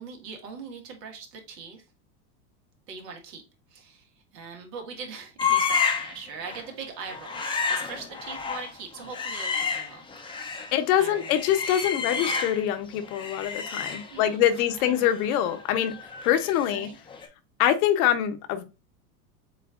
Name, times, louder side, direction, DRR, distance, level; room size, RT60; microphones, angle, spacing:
voice 1, 0.0-1.8 2.9-3.4 3.7-11.3 12.0-12.4 14.1-15.1 16.7-17.0, right 5 dB, 85° right, 1.7 m, -42 dB
sound 1, 5.4-6.2 6.5-6.7 7.1-10.7 11.1-12.7 13.0-16.8 17.1-17.3, left 6 dB, 10° left, 0.5 m, -30 dB
voice 2, 10.7-15.9 16.2-16.9 17.6-18.6, left 11 dB, 65° left, 1.0 m, -24 dB
7.5 x 2.6 x 2.4 m
hypercardioid pair, 105°, 47 cm